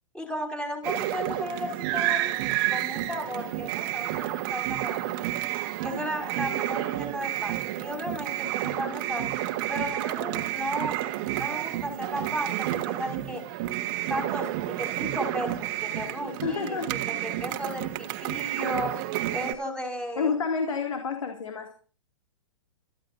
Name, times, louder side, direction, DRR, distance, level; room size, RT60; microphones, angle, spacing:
voice 1, 0.1-5.1 5.8-9.3 9.7-11.0 11.4-13.4 14.1-16.8 17.2-18.9 19.3-20.3, equal, 5° left, 2 dB, 5.8 m, -34 dB
sound 1, 0.8-19.5, right 14 dB, 45° right, 1.6 m, -30 dB
voice 2, 16.4-16.9 20.2-21.7, left 5 dB, 85° left, 4 dB, 2.6 m, -29 dB
26.5 x 15.0 x 2.7 m, 0.39 s
hypercardioid pair, 135°, 16 cm